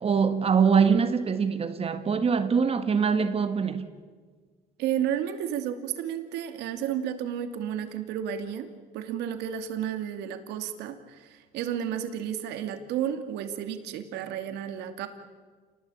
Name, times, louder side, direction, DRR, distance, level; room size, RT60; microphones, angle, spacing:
voice 1, 0.0-3.9, right 6 dB, 35° right, 1.8 m, -23 dB
voice 2, 4.8-11.3 11.5-15.1, right 9 dB, 90° right, 2.6 m, -32 dB
29.0 x 19.5 x 8.8 m
cardioid pair, 110°, 17 cm